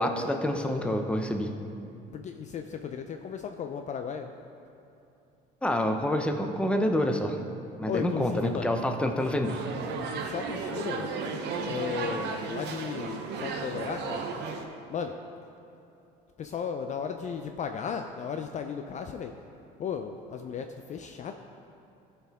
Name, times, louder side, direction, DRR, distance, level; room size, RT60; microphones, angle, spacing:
voice 1, 0.0-1.5 5.6-7.4 7.8-9.6, left 1 dB, 5° left, 4 dB, 0.7 m, -27 dB
voice 2, 2.1-4.3 7.9-8.7 9.2-9.3 10.2-11.1 11.6-14.2 14.9-15.1 16.4-19.3 19.8-21.4, left 7 dB, 40° left, 6 dB, 0.4 m, -35 dB
sound 1, 9.4-14.6, right 4 dB, 65° right, 0.8 m, -34 dB
13.5 x 4.6 x 3.5 m, 2.8 s
supercardioid pair, 95°, 19 cm